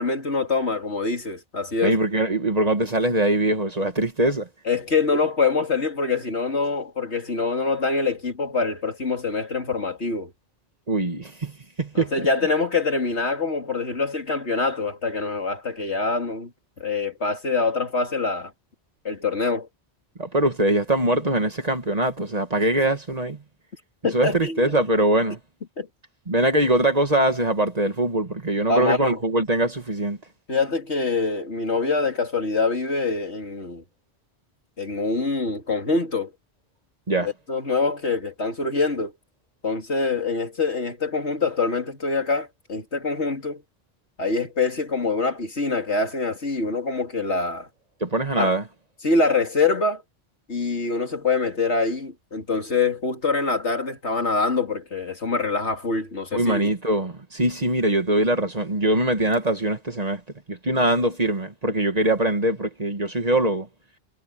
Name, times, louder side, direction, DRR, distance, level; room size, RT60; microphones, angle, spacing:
voice 1, 0.0-2.0 4.6-10.3 11.9-16.5 16.8-18.5 19.0-19.7 24.0-24.7 25.8-25.9 28.7-29.2 30.5-33.8 34.8-36.3 37.2-39.1 39.6-43.6 44.2-47.7 48.3-48.5 49.0-50.0 50.5-56.7, left 3 dB, 80° left, 3.4 m, -25 dB
voice 2, 1.8-4.5 10.9-11.5 11.8-12.3 20.2-23.4 24.1-25.4 26.3-30.2 37.1-37.3 48.0-48.6 56.3-60.2 60.5-63.7, right 1 dB, 35° right, 1.8 m, -22 dB
omnidirectional pair, 1.1 m